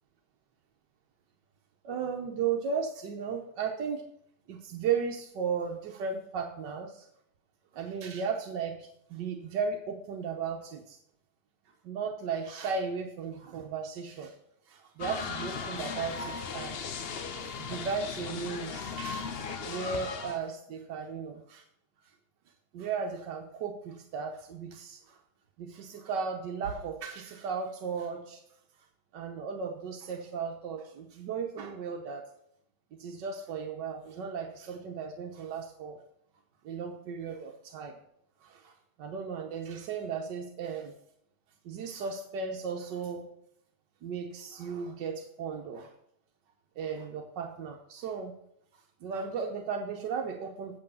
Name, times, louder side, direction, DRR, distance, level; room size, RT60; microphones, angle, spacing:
voice 1, 1.8-4.0 4.5-7.1 7.7-11.0 11.8-14.3 14.7-16.9 17.4-19.3 19.6-21.6 22.7-25.2 25.6-28.4 29.1-32.2 33.0-36.0 36.6-38.0 38.4-38.7 39.0-40.9 41.6-43.3 44.0-45.9 46.8-48.3 49.0-50.8, right 6 dB, 90° right, 3 dB, 1.6 m, -35 dB
sound 1, 15.0-20.4, left 5 dB, 50° left, 0.7 m, -37 dB
8.1 x 8.0 x 5.5 m, 0.72 s
omnidirectional pair, 1.9 m